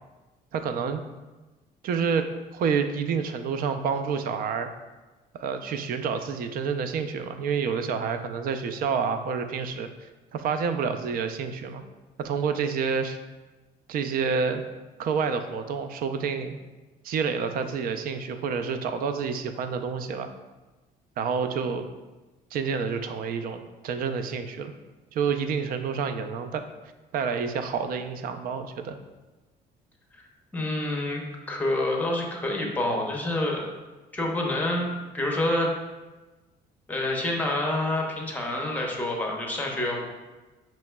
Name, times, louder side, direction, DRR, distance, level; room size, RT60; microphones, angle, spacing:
voice 1, 0.5-1.0 1.8-4.7 5.3-11.8 12.2-13.2 13.9-14.6 15.0-16.6 17.0-20.3 21.2-21.9 22.5-24.7 25.1-26.6 27.1-29.0, right 6 dB, 60° right, 8 dB, 0.4 m, -28 dB
voice 2, 30.5-33.7 34.1-34.9 35.1-35.7 36.9-40.0, left 1 dB, 10° left, -1 dB, 0.8 m, -27 dB
5.6 x 3.1 x 2.2 m, 1.2 s
cardioid pair, 110°, 17 cm